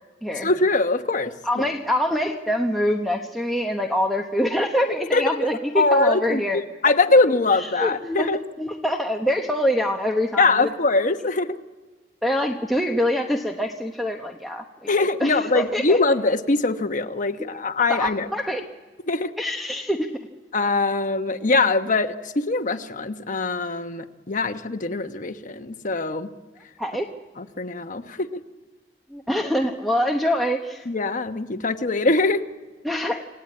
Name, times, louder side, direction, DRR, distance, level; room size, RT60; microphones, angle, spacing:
voice 1, 0.4-1.7 5.1-5.4 5.7-6.4 6.8-8.4 10.4-11.6 14.9-18.3 19.1-19.3 20.5-26.3 27.4-28.4 30.9-32.5, left 3 dB, 45° left, 7 dB, 1.1 m, -22 dB
voice 2, 1.4-6.6 7.5-8.3 8.6-10.7 12.2-14.6 14.9-16.0 17.9-18.6 19.4-20.1 26.8-27.0 29.1-30.8 32.8-33.2, equal, ahead, 0 dB, 1.0 m, -25 dB
28.0 x 16.5 x 8.7 m, 1.3 s
head